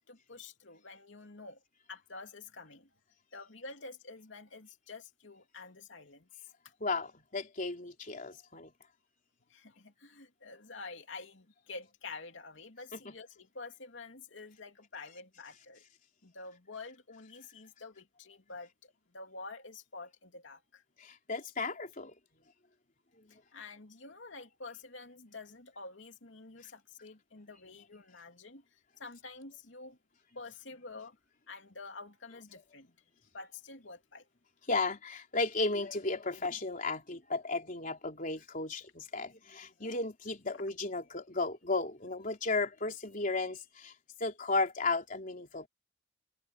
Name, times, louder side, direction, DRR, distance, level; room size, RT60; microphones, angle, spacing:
voice 1, 0.1-1.6 1.9-2.9 3.3-6.7 9.5-15.8 16.2-20.8 23.3-30.0 30.3-31.1 31.5-32.9 33.3-34.3 40.5-40.6, left 3 dB, 80° left, 2.8 m, -48 dB
voice 2, 6.8-8.7 12.9-13.1 21.0-22.1 23.2-23.4 27.7-27.8 34.7-43.9 44.2-45.7, left 3 dB, 45° left, 3.6 m, -34 dB
head